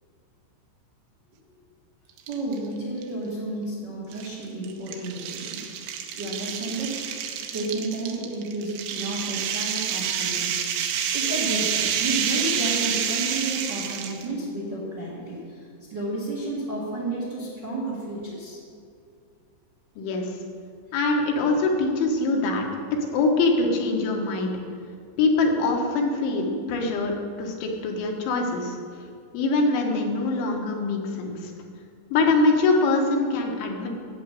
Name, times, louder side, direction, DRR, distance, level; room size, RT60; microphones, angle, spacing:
sound 1, 2.2-2.6 3.0-3.1 4.1-14.3, right 8 dB, 75° right, 2.9 m, -28 dB
voice 1, 2.3-5.9 6.1-7.0 7.5-10.7 11.1-18.6, right 2 dB, 35° right, -5 dB, 1.8 m, -31 dB
voice 2, 20.0-20.3 20.9-22.7 23.1-24.5 25.2-27.1 27.4-28.8 29.3-31.5 32.1-33.9, left 3 dB, 75° left, 1 dB, 3.7 m, -23 dB
11.0 x 9.3 x 7.6 m, 2.3 s
omnidirectional pair, 5.6 m